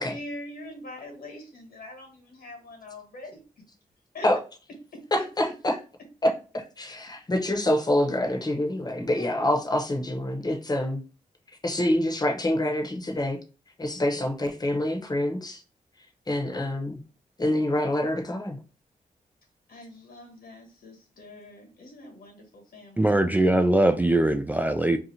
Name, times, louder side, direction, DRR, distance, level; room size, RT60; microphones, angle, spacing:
voice 1, 0.1-3.4 4.1-4.3 4.9-5.0 9.2-9.3 19.7-23.1, left 1 dB, 80° left, 1.3 m, -43 dB
voice 2, 5.1-5.8 6.2-11.0 11.6-13.4 13.8-15.6 16.3-17.0 17.4-18.6, left 1 dB, 25° left, 0.9 m, -26 dB
voice 3, 23.0-25.0, right 1 dB, 10° right, 0.3 m, -21 dB
2.8 x 2.4 x 4.1 m
cardioid pair, 55°, 15 cm